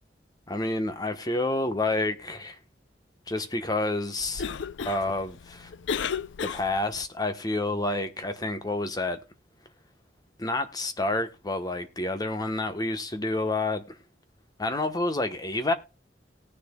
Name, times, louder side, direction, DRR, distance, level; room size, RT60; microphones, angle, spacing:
voice 1, 0.5-2.6 3.3-4.4 4.8-5.7 6.4-9.2 10.4-14.0 14.6-15.7, left 2 dB, 20° left, 1.1 m, -29 dB
Cough, 4.2-7.1, left 6 dB, 85° left, 0.5 m, -34 dB
19.0 x 6.8 x 2.3 m
head